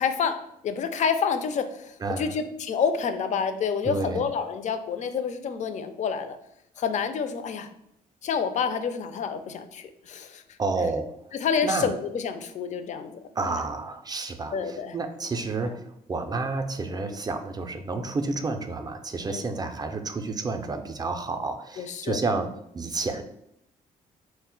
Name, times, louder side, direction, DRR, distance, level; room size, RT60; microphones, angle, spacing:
voice 1, 0.0-6.4 6.8-7.7 8.2-10.4 11.3-13.5 14.5-15.0 17.1-17.2 19.3-19.4 21.8-22.2, left 6 dB, 50° left, 10 dB, 0.4 m, -28 dB
voice 2, 2.0-2.3 3.9-4.2 10.6-11.1 11.6-11.9 13.4-23.2, right 3 dB, 25° right, 6 dB, 0.4 m, -30 dB
2.1 x 2.1 x 3.7 m, 0.78 s
supercardioid pair, 65°, 16 cm